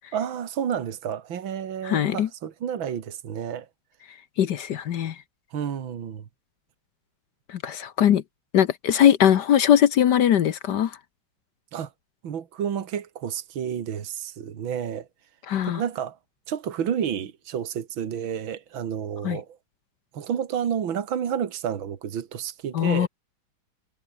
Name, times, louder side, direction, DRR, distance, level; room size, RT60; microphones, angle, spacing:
voice 1, 0.1-3.7 5.5-6.3 11.7-11.9 12.2-15.1 15.6-16.2 16.5-19.5 20.1-23.1, right 8 dB, 70° right, 2.4 m, -30 dB
voice 2, 1.8-2.3 4.4-5.1 7.5-8.2 8.5-10.9 15.5-15.8 19.2-19.4 22.7-23.1, left 10 dB, 60° left, 1.4 m, -20 dB
omnidirectional pair, 2.3 m